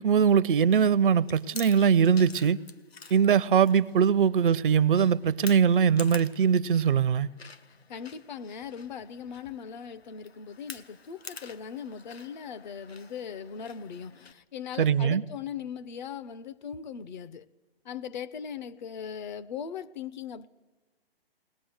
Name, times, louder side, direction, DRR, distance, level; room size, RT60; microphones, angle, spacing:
voice 1, 0.0-2.6 3.1-7.3 14.8-15.2, right 7 dB, 55° right, 0.6 m, -22 dB
Chewing mastication, 1.2-14.3, left 5 dB, 85° left, 1.1 m, -48 dB
voice 2, 7.9-17.5 17.8-20.5, left 7 dB, 50° left, 0.7 m, -39 dB
20.5 x 20.0 x 8.0 m
figure-of-eight pair, 135°, 31 cm